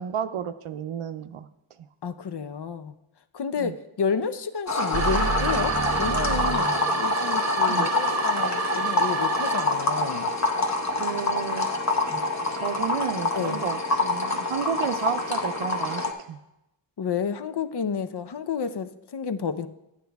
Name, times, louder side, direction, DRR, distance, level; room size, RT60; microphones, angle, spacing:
voice 1, 0.0-1.5 3.6-3.7 7.7-7.9 11.0-11.7 12.6-16.4, right 8 dB, 80° right, 11 dB, 0.6 m, -32 dB
voice 2, 2.0-2.9 3.3-10.3 13.3-13.6 17.0-19.7, left 6 dB, 55° left, 11 dB, 0.6 m, -30 dB
sound 1, 4.7-16.1, left 2 dB, 35° left, 1.0 m, -26 dB
sound 2, 4.9-9.9, right 6 dB, 35° right, 0.4 m, -29 dB
10.5 x 8.3 x 3.4 m, 0.89 s
wide cardioid pair, 65°, 50 cm